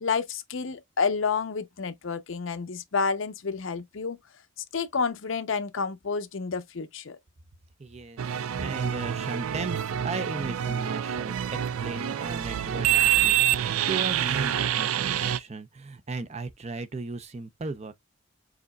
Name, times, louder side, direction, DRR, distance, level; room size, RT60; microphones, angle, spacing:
voice 1, 0.0-4.2 4.7-7.2, left 5 dB, 65° left, 0.6 m, -29 dB
voice 2, 7.8-17.9, right 3 dB, 30° right, 0.5 m, -36 dB
sound 1, 8.2-15.4, right 11 dB, 90° right, 0.4 m, -26 dB
4.9 x 3.9 x 2.2 m
head